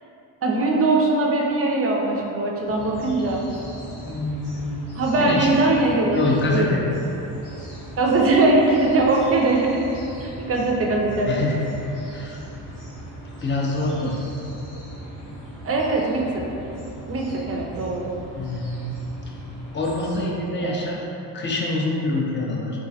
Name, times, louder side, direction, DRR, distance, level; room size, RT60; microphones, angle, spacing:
voice 1, 0.4-3.4 4.9-6.8 8.0-9.9 10.2-11.5 15.6-16.4 17.0-18.2 20.6-20.8, right 2 dB, 30° right, -1 dB, 0.5 m, -21 dB
sound 1, 2.7-20.2, right 1 dB, 90° left, 1.1 m, -39 dB
voice 2, 4.0-4.9 5.2-5.5 6.2-6.8 11.3-11.6 12.1-12.4 13.4-14.2 18.3-19.0 19.7-21.0 21.3-22.7, left 2 dB, 25° left, -2 dB, 0.5 m, -25 dB
3.0 x 2.3 x 2.6 m, 2.8 s
supercardioid pair, 55°, 48 cm